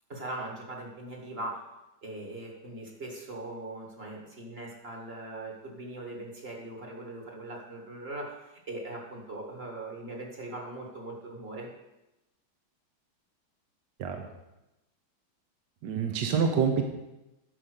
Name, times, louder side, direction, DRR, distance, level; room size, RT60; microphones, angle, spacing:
voice 1, 0.1-1.6 2.0-11.7, right 2 dB, 30° right, 0 dB, 1.9 m, -40 dB
voice 2, 15.8-16.8, right 6 dB, 65° right, 4 dB, 1.5 m, -27 dB
11.0 x 5.7 x 6.6 m, 0.96 s
omnidirectional pair, 2.3 m